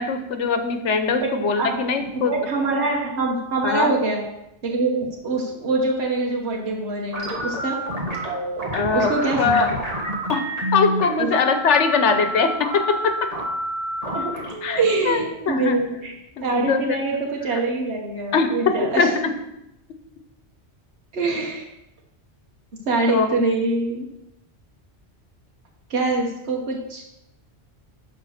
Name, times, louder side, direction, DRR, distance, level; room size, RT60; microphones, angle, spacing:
voice 1, 0.0-2.3 3.6-3.9 8.7-9.7 10.3-10.4 10.7-12.8 14.6-15.2 15.5-15.8 16.4-17.0 18.3-18.5 19.0-19.1 23.1-23.3, left 5 dB, 85° left, 7 dB, 1.2 m, -21 dB
voice 2, 1.2-1.7 2.1-4.2 4.6-7.8 8.9-9.6 11.2-11.3 14.1-14.3 14.8-16.1 16.4-19.1 21.1-21.7 22.9-24.1 25.9-27.0, right 3 dB, 70° right, -1 dB, 1.5 m, -24 dB
sound 1, 7.1-16.0, right 1 dB, 35° right, 1.6 m, -29 dB
10.0 x 3.7 x 6.5 m, 0.87 s
omnidirectional pair, 1.2 m